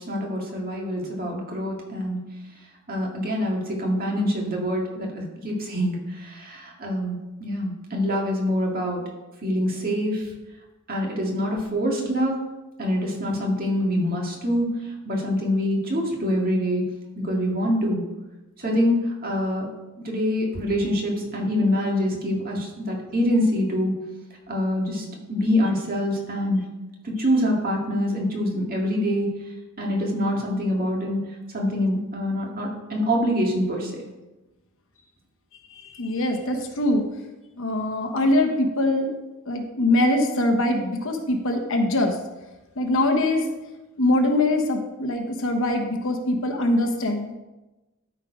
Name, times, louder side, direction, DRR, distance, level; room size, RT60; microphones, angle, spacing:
voice 1, 0.0-2.2 2.9-9.0 9.4-10.3 10.9-12.4 12.8-16.9 17.2-18.0 18.6-19.7 20.0-24.0 24.5-26.6 27.0-29.3 29.8-31.3 31.5-33.9, equal, 40° right, -1 dB, 2.0 m, -25 dB
voice 2, 35.7-37.0 37.6-39.1 39.5-42.2 42.8-43.5 44.0-47.4, left 1 dB, 65° left, 4 dB, 1.1 m, -23 dB
12.5 x 4.6 x 5.0 m, 1.1 s
head